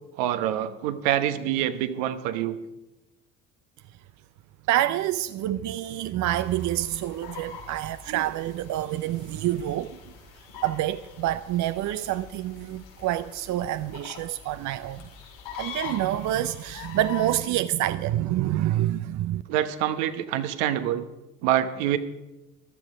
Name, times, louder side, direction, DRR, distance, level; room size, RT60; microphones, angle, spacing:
voice 1, 0.2-2.6 19.5-21.0 21.4-22.0, right 11 dB, 70° right, 1.1 m, -26 dB
voice 2, 4.7-10.0 10.6-15.0 15.6-19.4, right 13 dB, 50° right, 0.6 m, -27 dB
sound 1, 6.2-17.4, left 7 dB, 75° left, 5.2 m, -43 dB
15.0 x 12.0 x 5.0 m
hypercardioid pair, 65°, 39 cm